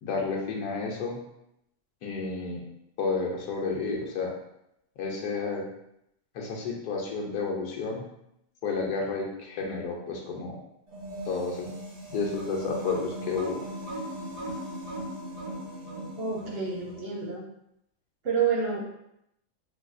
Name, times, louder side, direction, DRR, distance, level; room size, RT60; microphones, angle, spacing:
voice 1, 0.0-1.2 2.0-2.7 3.0-4.3 5.0-5.7 6.3-8.0 8.6-10.6 11.2-11.7 12.1-13.6, left 4 dB, 85° left, -1 dB, 1.3 m, -31 dB
sound 1, 10.9-17.2, right 1 dB, 75° right, 1.7 m, -38 dB
voice 2, 16.2-17.4 18.2-18.8, right 6 dB, 60° right, -2 dB, 0.7 m, -28 dB
4.5 x 2.3 x 2.5 m, 0.81 s
omnidirectional pair, 1.6 m